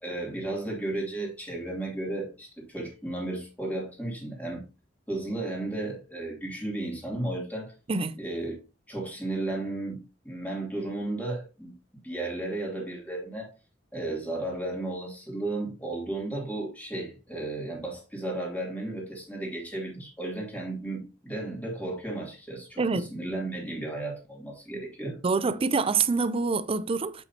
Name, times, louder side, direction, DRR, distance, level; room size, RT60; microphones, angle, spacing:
voice 1, 0.0-4.6 5.1-7.7 8.2-8.6 8.9-10.0 10.2-11.7 12.0-13.5 13.9-25.2, right 2 dB, 10° left, 2.9 m, -34 dB
voice 2, 7.9-8.2 22.8-23.1 25.2-27.2, right 4 dB, 30° right, 0.4 m, -26 dB
7.8 x 6.1 x 2.9 m
head